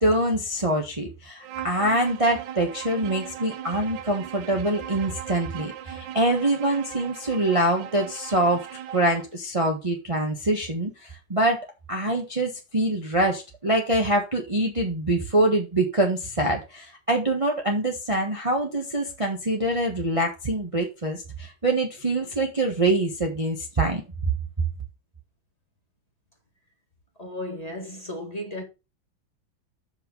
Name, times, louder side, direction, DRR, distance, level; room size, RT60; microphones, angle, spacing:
voice 1, 0.0-8.7 8.9-24.0 24.6-24.7, right 1 dB, 20° right, 1.2 m, -25 dB
Bowed string instrument, 1.4-9.3, right 10 dB, 70° right, 1.6 m, -39 dB
voice 2, 27.2-28.6, left 1 dB, 20° left, 2.0 m, -34 dB
7.3 x 5.7 x 5.3 m
omnidirectional pair, 2.1 m